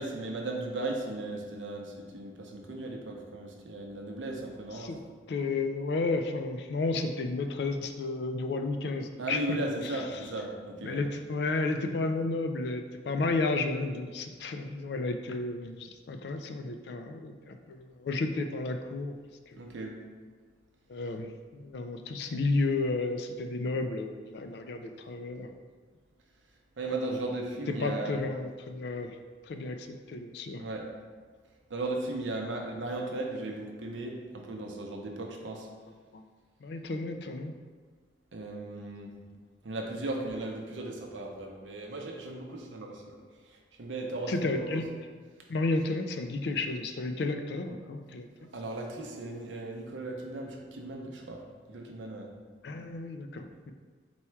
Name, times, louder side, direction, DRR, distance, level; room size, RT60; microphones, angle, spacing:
voice 1, 0.0-4.9 9.2-11.0 19.6-20.0 26.8-28.2 30.6-30.9 31.7-35.7 38.3-39.1 39.6-43.2 43.5-44.8 48.5-51.4 51.7-52.3, right 2 dB, 85° right, 1 dB, 0.6 m, -36 dB
voice 2, 5.3-9.6 9.8-10.0 10.8-19.2 19.5-19.6 20.9-25.5 27.8-29.2 29.5-30.6 33.4-33.5 36.1-36.2 36.6-37.5 39.1-39.4 44.3-44.9 45.5-48.5 52.6-53.7, left 3 dB, 60° left, 6 dB, 0.3 m, -32 dB
4.2 x 2.3 x 4.4 m, 1.5 s
head